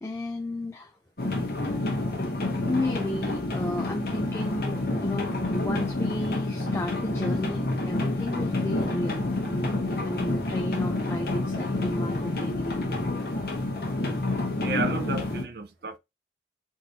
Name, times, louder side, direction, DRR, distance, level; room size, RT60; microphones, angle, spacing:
voice 1, 0.0-1.0 2.7-9.3 10.0-12.9, left 2 dB, 15° left, 0.3 m, -33 dB
sound 1, 1.2-15.4, left 2 dB, 55° left, 0.9 m, -28 dB
voice 2, 14.6-16.0, right 4 dB, 55° right, 0.5 m, -32 dB
3.8 x 2.5 x 2.8 m
head